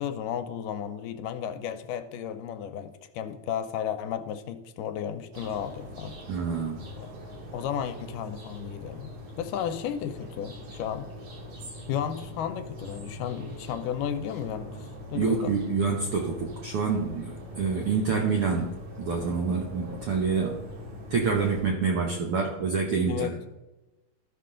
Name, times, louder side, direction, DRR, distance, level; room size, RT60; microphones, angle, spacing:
voice 1, 0.0-6.2 7.0-7.1 7.5-9.1 9.4-11.1 11.9-15.5 23.1-23.4, left 9 dB, 85° left, 2.2 m, -33 dB
sound 1, 5.3-21.6, left 1 dB, 55° right, 3.2 m, -43 dB
voice 2, 6.3-6.8 15.1-20.6 21.1-23.4, right 5 dB, 75° right, 1.3 m, -27 dB
13.5 x 5.9 x 3.7 m
omnidirectional pair, 3.8 m